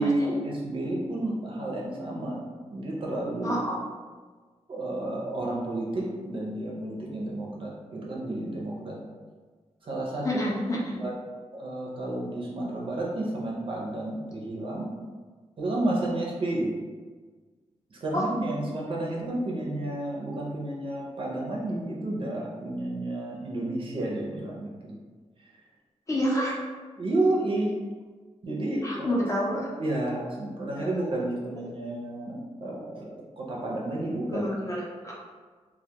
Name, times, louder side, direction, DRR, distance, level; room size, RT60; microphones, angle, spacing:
voice 1, 0.0-3.6 4.7-9.0 9.8-10.4 11.0-11.1 11.5-14.9 15.6-16.7 17.9-25.0 27.0-27.7 28.4-29.2 29.8-34.5, right 1 dB, 45° right, -3 dB, 0.5 m, -31 dB
voice 2, 3.4-3.8 10.2-11.0 18.1-18.3 26.1-26.6 28.8-29.7 30.7-30.9 34.3-35.2, equal, 25° left, -4 dB, 0.4 m, -28 dB
2.1 x 2.1 x 2.7 m, 1.4 s
wide cardioid pair, 145°, 12 cm